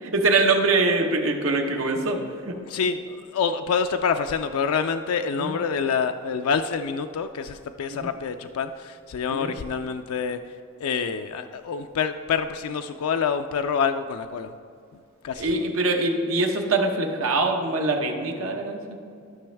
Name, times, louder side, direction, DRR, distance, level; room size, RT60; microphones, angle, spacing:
voice 1, 0.0-2.2 2.5-2.6 5.4-5.6 7.9-8.1 9.3-9.5 15.4-19.0, right 3 dB, 70° right, 2 dB, 1.1 m, -23 dB
voice 2, 2.7-10.4 10.8-14.5 15.2-15.6, left 6 dB, 90° left, 7 dB, 0.4 m, -27 dB
13.0 x 6.1 x 3.4 m, 2.4 s
head